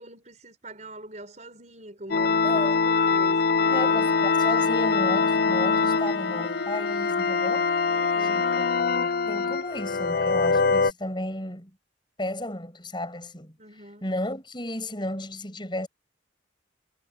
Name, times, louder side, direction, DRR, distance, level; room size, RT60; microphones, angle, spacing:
voice 1, 0.0-4.0 7.8-8.5 13.6-14.1, right 2 dB, 35° right, 6.3 m, -43 dB
sound 1, 2.1-10.9, left 4 dB, 50° left, 0.5 m, -23 dB
voice 2, 2.4-2.9 3.7-7.7 8.3-8.7 9.3-11.8 12.2-13.6 14.0-15.9, left 1 dB, 25° left, 6.3 m, -33 dB
sound 2, 3.5-9.0, left 5 dB, 80° left, 2.1 m, -35 dB
head